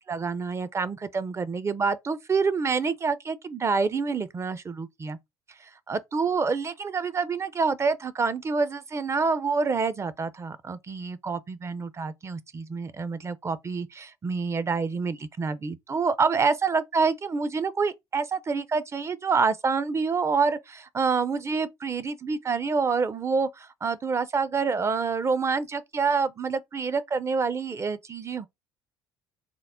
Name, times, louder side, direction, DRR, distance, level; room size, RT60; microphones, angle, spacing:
voice 1, 0.1-5.2 5.6-28.5, right 5 dB, 25° right, 0.5 m, -27 dB
3.7 x 2.0 x 3.6 m
hypercardioid pair, 70°, 10 cm